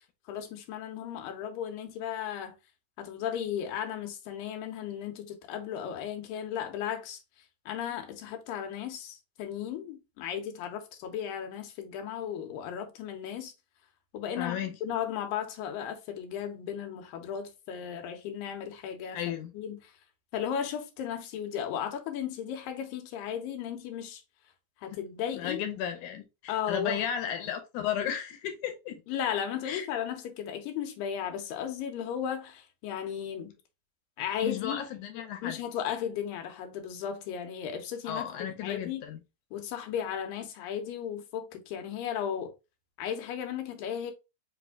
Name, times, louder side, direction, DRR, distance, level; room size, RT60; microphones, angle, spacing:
voice 1, 0.3-2.6 3.0-7.2 7.7-13.5 14.1-19.2 19.5-19.8 20.3-24.2 24.8-25.6 26.5-27.0 29.1-33.6 34.2-34.8 35.4-38.3 38.6-39.0 39.5-42.5 43.0-44.1, left 9 dB, 90° left, 2.6 m, -35 dB
voice 2, 14.4-14.7 19.1-19.5 24.9-25.0 25.3-29.0 29.7-29.9 34.4-35.6 38.1-39.2, left 9 dB, 75° left, 2.1 m, -34 dB
5.3 x 2.5 x 3.6 m
omnidirectional pair, 3.9 m